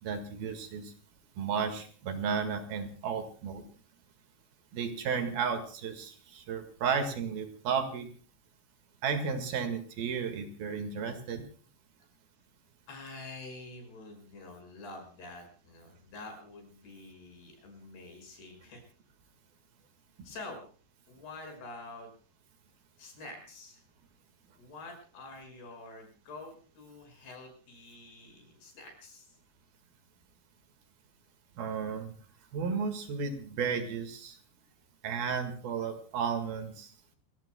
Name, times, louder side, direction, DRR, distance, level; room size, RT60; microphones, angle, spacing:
voice 1, 0.0-0.9 1.4-3.6 4.7-8.1 9.0-11.4 31.6-32.1 32.5-34.4 35.0-36.9, right 6 dB, 65° right, 7 dB, 3.5 m, -33 dB
voice 2, 12.9-18.8 20.2-20.6 21.1-22.1 23.0-23.8 24.6-29.4, left 2 dB, 65° left, 4 dB, 8.0 m, -47 dB
29.5 x 18.0 x 2.3 m, 0.40 s
omnidirectional pair, 4.9 m